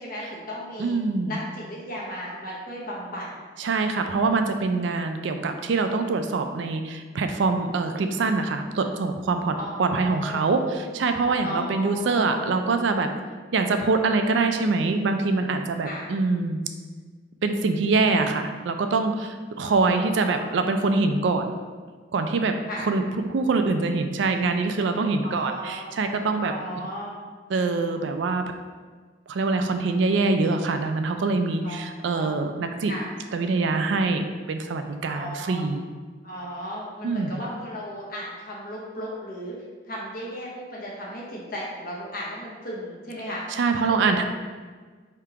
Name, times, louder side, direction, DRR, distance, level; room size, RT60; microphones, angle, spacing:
voice 1, 0.0-0.9 1.3-3.3 9.5-10.7 11.4-12.5 15.8-16.1 19.6-20.5 22.7-22.9 25.2-25.9 26.4-27.2 31.6-31.8 32.1-32.3 32.9-33.1 35.0-35.6 36.2-39.6 39.9-43.4 43.9-44.2, equal, 45° left, -4 dB, 0.8 m, -36 dB
voice 2, 0.8-1.4 3.6-13.1 13.5-16.6 17.4-21.6 22.1-22.6 22.9-26.5 27.5-28.4 29.3-32.9 33.3-34.2 34.5-35.8 37.0-37.4 43.6-44.2, right 3 dB, 70° right, 7 dB, 0.4 m, -24 dB
3.5 x 2.8 x 4.7 m, 1.5 s
head